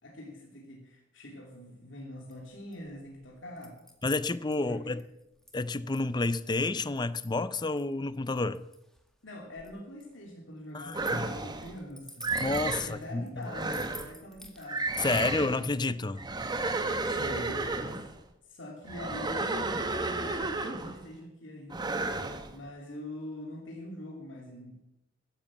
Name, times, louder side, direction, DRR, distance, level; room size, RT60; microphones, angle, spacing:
voice 1, 0.0-3.8 4.6-5.0 9.2-12.3 12.7-15.4 17.0-18.2 18.5-22.0 22.5-24.8, left 1 dB, 70° left, 2.8 m, -44 dB
sound 1, 2.3-14.8, equal, 5° left, 2.0 m, -53 dB
voice 2, 4.0-5.0 5.5-8.6 10.7-11.3 12.4-13.5 15.0-16.2, left 3 dB, 20° left, 0.5 m, -30 dB
sound 2, 10.9-11.7 12.2-12.9 13.5-14.1 14.7-15.6 16.2-18.1 18.9-21.0 21.7-22.5, right 3 dB, 20° right, 1.2 m, -32 dB
14.0 x 10.5 x 7.3 m
head